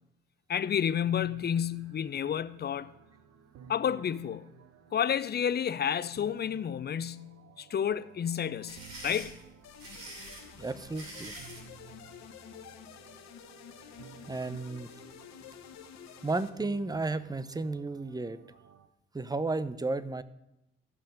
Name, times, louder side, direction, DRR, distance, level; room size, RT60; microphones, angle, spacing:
voice 1, 0.5-2.9 3.7-4.4 4.9-9.4, left 8 dB, 35° left, 0.5 m, -30 dB
sound 1, 1.0-18.9, right 7 dB, 60° right, 0.9 m, -55 dB
sound 2, 8.4-11.7, right 1 dB, 80° right, 3.0 m, -45 dB
sound 3, 9.6-16.5, left 8 dB, 65° left, 1.1 m, -50 dB
voice 2, 10.6-11.3 14.3-14.9 16.2-18.4 19.1-20.2, right 3 dB, 15° right, 0.7 m, -33 dB
15.0 x 5.6 x 5.2 m
hypercardioid pair, 45°, 29 cm